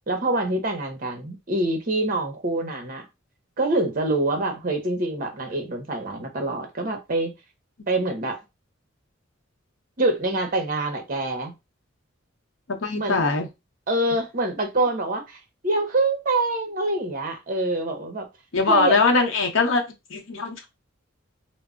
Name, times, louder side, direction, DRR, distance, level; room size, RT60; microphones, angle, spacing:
voice 1, 0.1-3.1 3.6-7.3 7.9-8.4 10.0-11.5 13.0-13.2 13.9-18.3 18.7-19.0, right 2 dB, 45° right, 0.7 m, -25 dB
voice 2, 12.7-13.5 18.5-19.8 20.1-20.7, left 4 dB, 75° left, 0.7 m, -21 dB
2.2 x 2.0 x 3.6 m
head